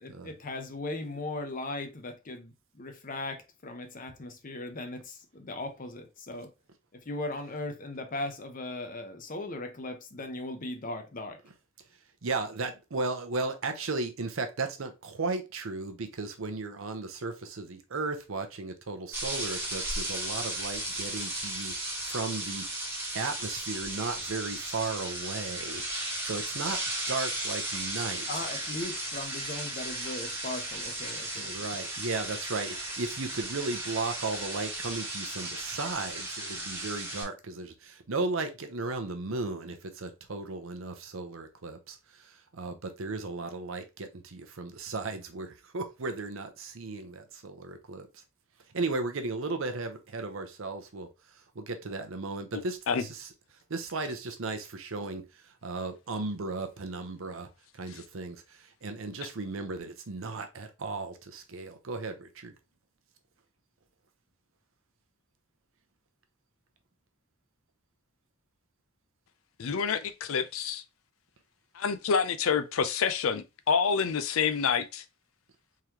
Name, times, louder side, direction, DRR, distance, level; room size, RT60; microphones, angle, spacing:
voice 1, 0.0-6.5 6.9-11.4 28.3-31.7, left 2 dB, 40° left, 0.7 m, -38 dB
voice 2, 12.2-21.7 22.1-22.7 23.1-26.8 27.1-28.4 31.4-42.0 42.5-48.1 48.7-51.1 51.6-53.3 53.7-55.2 55.6-57.5 57.8-58.4 58.8-62.5, right 3 dB, 70° right, 0.7 m, -35 dB
sound 1, 19.1-37.2, right 1 dB, 10° right, 1.3 m, -35 dB
voice 3, 69.6-70.8 71.7-75.0, left 6 dB, 75° left, 0.5 m, -28 dB
3.8 x 3.2 x 2.8 m
head